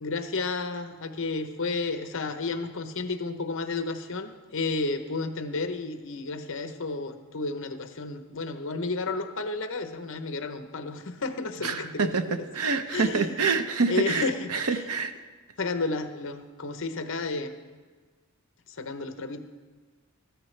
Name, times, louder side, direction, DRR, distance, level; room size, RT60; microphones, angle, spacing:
voice 1, 0.0-12.4 12.9-13.3 13.9-14.8 15.6-17.5 18.8-19.4, left 3 dB, 60° left, 8 dB, 0.8 m, -32 dB
voice 2, 11.6-15.1, right 4 dB, 80° right, 8 dB, 0.8 m, -27 dB
14.0 x 13.5 x 3.3 m, 1.4 s
head